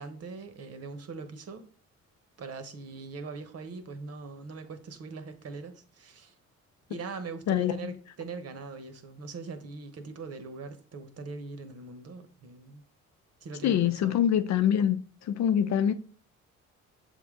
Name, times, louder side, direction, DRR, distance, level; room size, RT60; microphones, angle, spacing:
voice 1, 0.0-1.7 2.4-6.3 6.9-12.8 13.4-14.2, right 4 dB, 55° right, 1.0 m, -41 dB
voice 2, 7.5-7.9 13.6-15.0 15.3-15.9, left 9 dB, 65° left, 0.6 m, -24 dB
7.1 x 3.6 x 3.6 m
cardioid pair, 90°, 30 cm